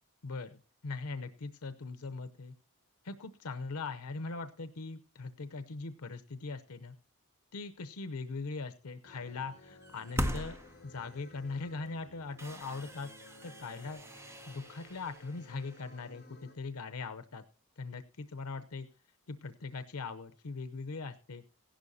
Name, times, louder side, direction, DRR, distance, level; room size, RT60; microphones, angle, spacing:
voice 1, 0.2-2.5 3.0-7.0 7.5-10.6 10.8-13.1 13.4-14.0 14.5-17.4 17.8-18.9 19.3-21.4, left 3 dB, 85° left, 10 dB, 0.7 m, -41 dB
sound 1, 9.0-16.5, left 2 dB, 45° left, 2.5 m, -56 dB
sound 2, 9.8-11.2 11.8-11.9 12.3-16.2, right 1 dB, 10° right, 0.7 m, -41 dB
16.0 x 11.5 x 2.7 m, 0.35 s
head